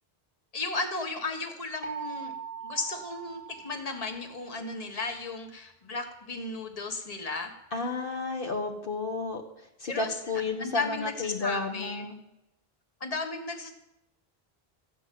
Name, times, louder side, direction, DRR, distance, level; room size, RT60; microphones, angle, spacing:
voice 1, 0.5-2.3 2.6-7.5 9.8-10.2 10.6-12.1 13.0-13.7, left 3 dB, 40° left, 5 dB, 1.5 m, -34 dB
sound 1, 1.8-4.6, right 7 dB, 10° right, 1.9 m, -41 dB
voice 2, 7.7-9.4 9.8-12.2, left 3 dB, 60° left, 2 dB, 1.4 m, -32 dB
14.5 x 6.0 x 9.1 m, 0.89 s
omnidirectional pair, 1.0 m